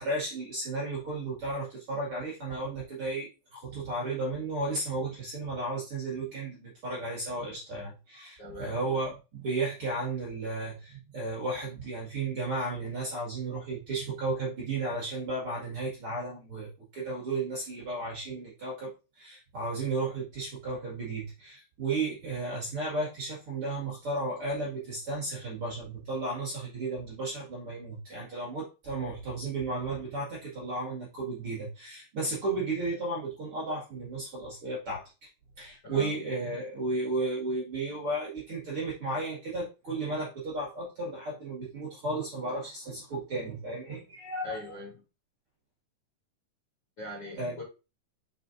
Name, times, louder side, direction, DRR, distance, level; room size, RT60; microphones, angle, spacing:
voice 1, 0.0-18.9 19.2-35.0 35.6-44.6 47.4-47.6, right 2 dB, 45° right, 2.6 m, -34 dB
voice 2, 8.4-8.9 35.8-36.1 44.4-45.0 47.0-47.6, left 1 dB, 25° left, 3.8 m, -41 dB
6.3 x 5.6 x 2.7 m
omnidirectional pair, 4.0 m